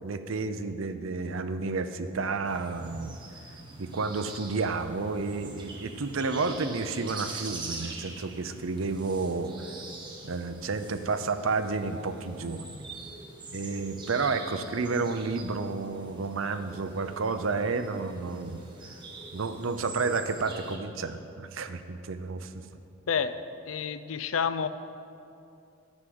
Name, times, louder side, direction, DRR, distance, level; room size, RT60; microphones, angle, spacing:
voice 1, 0.0-3.2 3.8-9.5 10.2-12.9 13.5-18.6 19.3-22.5, right 4 dB, 80° right, 9 dB, 0.6 m, -31 dB
sound 1, 2.4-20.8, right 3 dB, 25° right, 1.3 m, -44 dB
voice 2, 23.1-23.4 23.7-24.7, left 6 dB, 85° left, 12 dB, 0.5 m, -29 dB
9.9 x 6.3 x 7.7 m, 2.6 s
head